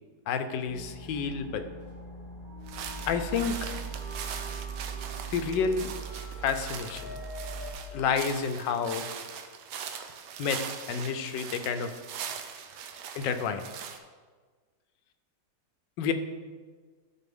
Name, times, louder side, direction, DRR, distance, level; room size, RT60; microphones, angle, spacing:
voice 1, 0.3-1.7 3.1-3.7 5.3-5.9 6.4-7.2 7.9-9.1 10.4-10.6 10.9-12.0 13.1-13.7 16.0-16.1, left 6 dB, 85° left, 9 dB, 1.3 m, -29 dB
sound 1, 0.7-7.7, right 3 dB, 40° left, 2.4 m, -40 dB
sound 2, 2.7-14.0, right 7 dB, 75° right, 1.3 m, -41 dB
12.5 x 4.4 x 3.6 m, 1.5 s
omnidirectional pair, 1.9 m